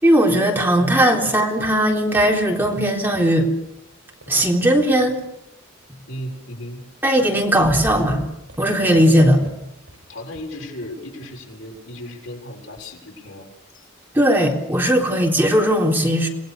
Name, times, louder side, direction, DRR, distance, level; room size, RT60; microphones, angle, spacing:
voice 1, 0.0-3.5 4.3-5.2 7.0-8.3 8.6-9.5 14.1-16.3, equal, 10° right, 0 dB, 3.7 m, -18 dB
sound 1, 1.5-5.5 6.7-6.8 7.2-12.9, equal, 75° right, 5.5 m, -42 dB
voice 2, 6.1-6.8 10.1-13.5 13.7-13.9, left 1 dB, 80° left, 1 dB, 6.7 m, -35 dB
28.0 x 20.5 x 6.8 m, 0.86 s
head